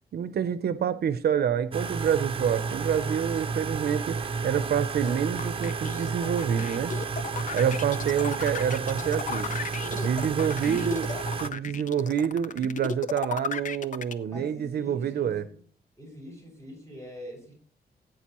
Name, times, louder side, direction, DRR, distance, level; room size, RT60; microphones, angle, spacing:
voice 1, 0.1-6.9 7.5-9.5 9.9-11.1 11.4-15.4, right 8 dB, 70° right, 0.6 m, -27 dB
sound 1, 1.7-11.5, right 5 dB, 30° right, 0.8 m, -31 dB
sound 2, 5.0-14.1, left 6 dB, 50° left, 0.7 m, -35 dB
voice 2, 14.3-15.6 16.0-17.5, equal, 20° left, 5.6 m, -44 dB
16.0 x 9.0 x 3.0 m
wide cardioid pair, 165°, 17 cm